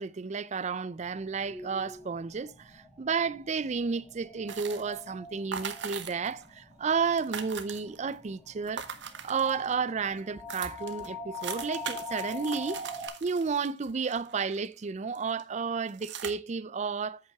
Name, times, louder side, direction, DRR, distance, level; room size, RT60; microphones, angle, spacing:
voice 1, 0.0-8.9 9.2-12.8 13.2-17.2, right 5 dB, 40° right, 0.4 m, -32 dB
sound 1, 0.9-13.1, left 2 dB, 5° left, 4.3 m, -44 dB
sound 2, 4.5-5.1 5.5-6.5 6.7-6.8 7.0-8.1 8.6-9.7 10.2-10.3 10.5-14.8 15.2-15.4 15.9-16.3, right 7 dB, 75° right, 1.0 m, -40 dB
8.3 x 7.9 x 3.5 m
head